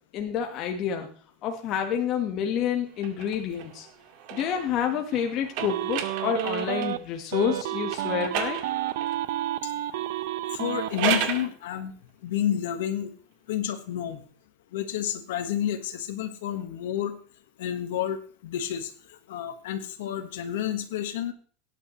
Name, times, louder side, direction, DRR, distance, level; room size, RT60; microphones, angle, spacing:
voice 1, 0.1-1.1 1.4-3.9 4.3-8.6, left 8 dB, 40° left, 3 dB, 1.3 m, -28 dB
sound 1, 3.0-7.0 7.9-9.2 10.7-11.5, right 8 dB, 60° right, 2.0 m, -33 dB
sound 2, 5.6-7.0 7.3-10.9, right 13 dB, 80° right, 0.7 m, -30 dB
voice 2, 10.5-11.9 12.2-13.1 13.5-14.2 14.7-17.2 17.6-21.3, left 10 dB, 90° left, 6 dB, 1.3 m, -30 dB
18.0 x 9.1 x 3.1 m, 0.43 s
supercardioid pair, 150°, 0 cm